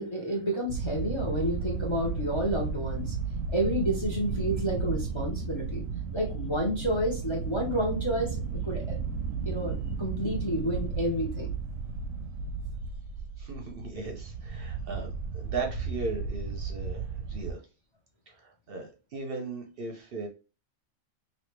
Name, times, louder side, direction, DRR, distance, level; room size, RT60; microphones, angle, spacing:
voice 1, 0.0-3.1 3.5-5.8 6.1-9.0 9.4-11.5, equal, 30° left, 0 dB, 0.6 m, -30 dB
sound 1, 0.7-17.5, right 5 dB, 80° right, 1.0 m, -34 dB
voice 2, 13.4-17.6 18.3-20.3, right 3 dB, 55° right, 2 dB, 0.8 m, -37 dB
3.2 x 2.7 x 3.1 m, 0.32 s
omnidirectional pair, 1.3 m